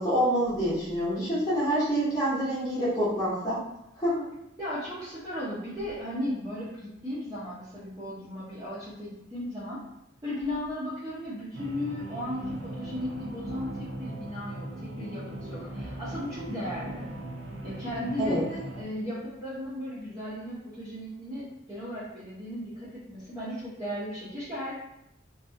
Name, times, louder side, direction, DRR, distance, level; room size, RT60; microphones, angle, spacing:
voice 1, 0.0-3.6 4.0-4.3 18.2-18.4, equal, 20° left, -9 dB, 0.8 m, -27 dB
voice 2, 4.6-9.8 10.2-17.1 17.6-24.7, left 1 dB, 20° right, -12 dB, 0.6 m, -36 dB
sound 1, 11.5-18.8, right 1 dB, 85° right, 0.5 m, -39 dB
2.6 x 2.3 x 2.4 m, 0.83 s
head